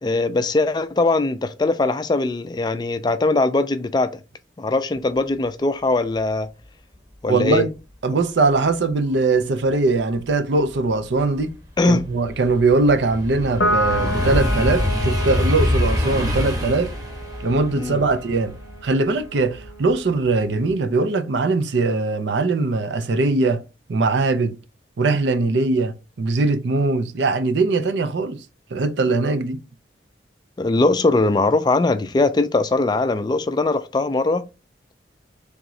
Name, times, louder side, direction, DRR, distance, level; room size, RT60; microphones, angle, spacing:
voice 1, 0.0-4.2 4.6-6.5 7.2-7.7 11.8-12.1 17.8-18.0 30.6-34.4, left 2 dB, 25° left, 0.3 m, -20 dB
voice 2, 7.3-7.7 8.0-11.5 11.9-16.9 17.4-18.5 18.8-23.6 23.9-24.6 25.0-28.4 28.7-29.6, right 3 dB, 75° right, 0.5 m, -21 dB
sound 1, 10.9-19.9 20.3-20.7, left 1 dB, 20° right, 0.9 m, -25 dB
Piano, 13.6-20.3, equal, 70° left, 0.6 m, -30 dB
3.6 x 3.0 x 3.7 m
head